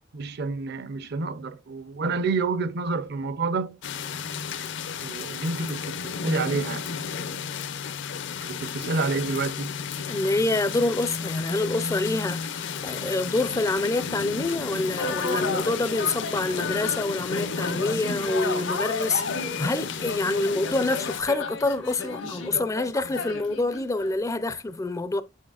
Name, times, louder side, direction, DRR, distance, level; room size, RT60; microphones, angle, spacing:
voice 1, 0.1-3.8 5.0-7.7 8.4-9.8, right 4 dB, 60° right, 0.6 m, -29 dB
sound 1, 3.8-21.2, left 6 dB, 65° left, 0.6 m, -33 dB
voice 2, 10.1-25.2, left 2 dB, 15° left, 0.4 m, -27 dB
sound 2, 15.0-24.2, left 3 dB, 90° left, 1.8 m, -33 dB
8.1 x 6.4 x 2.3 m
head